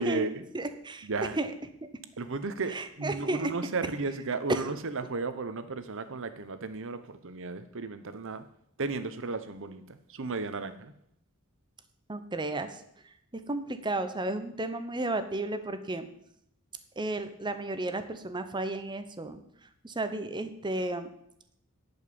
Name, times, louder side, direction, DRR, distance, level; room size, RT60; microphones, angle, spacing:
voice 1, 0.0-0.4 1.0-1.4 2.2-8.4 8.8-10.9, right 3 dB, 60° right, 11 dB, 0.9 m, -34 dB
voice 2, 0.5-1.1 1.4-1.5 1.8-1.9 2.7-3.5 4.5-4.7 12.1-16.1 17.0-21.1, right 2 dB, 20° right, 9 dB, 0.9 m, -33 dB
10.5 x 5.5 x 8.5 m, 0.73 s
head